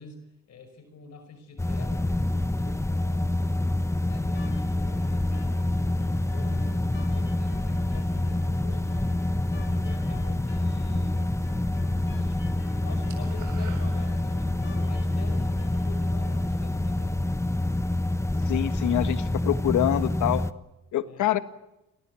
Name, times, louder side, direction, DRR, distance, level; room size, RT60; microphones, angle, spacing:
voice 1, 0.0-3.6 4.0-9.0 9.5-11.2 12.1-17.3 21.0-21.3, left 4 dB, 60° left, 9 dB, 5.4 m, -46 dB
sound 1, 1.6-20.5, left 1 dB, 10° left, 1.1 m, -27 dB
sound 2, 4.3-16.6, left 4 dB, 40° left, 3.7 m, -52 dB
sound 3, 10.7-11.7 12.0-12.3 12.6-14.7, right 8 dB, 80° right, 7.2 m, -49 dB
voice 2, 18.5-20.4 20.9-21.4, left 12 dB, 75° left, 11 dB, 1.7 m, -25 dB
29.0 x 20.5 x 8.5 m, 0.95 s
cardioid pair, 90°, 30 cm